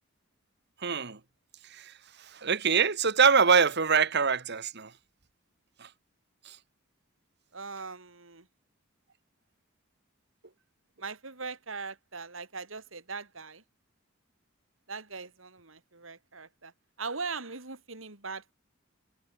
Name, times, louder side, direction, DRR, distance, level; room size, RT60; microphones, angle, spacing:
voice 1, 0.8-1.2 2.4-4.9, right 6 dB, 55° right, 1.7 m, -23 dB
voice 2, 7.5-8.5 11.0-13.6 14.9-16.7 17.0-18.5, right 4 dB, 75° right, 3.6 m, -40 dB
head